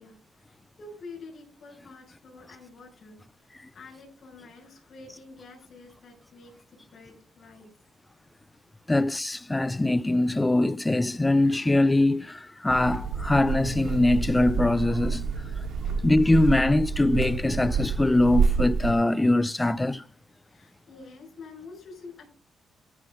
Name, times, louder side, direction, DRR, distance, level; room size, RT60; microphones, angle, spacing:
voice 1, 0.0-3.2 3.7-7.7 8.9-9.0 15.8-16.1 20.5-22.3, left 3 dB, 50° left, 5.8 m, -47 dB
voice 2, 8.9-15.3 16.0-20.0, left 2 dB, 15° left, 0.6 m, -22 dB
sound 1, 12.7-18.9, right 5 dB, 75° right, 2.4 m, -28 dB
14.0 x 5.5 x 5.2 m
cardioid pair, 90°, 0 cm